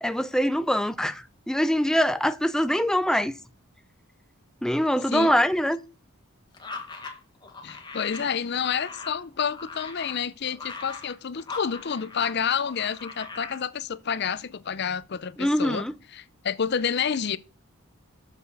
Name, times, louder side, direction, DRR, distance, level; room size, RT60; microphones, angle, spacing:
voice 1, 0.0-3.3 4.6-5.8 15.4-15.9, equal, 5° left, 0.4 m, -23 dB
sound 1, 6.5-12.4 12.6-13.6, left 4 dB, 20° left, 1.5 m, -40 dB
voice 2, 7.6-15.8 16.1-17.4, left 7 dB, 50° left, 0.5 m, -29 dB
7.2 x 6.3 x 5.4 m
head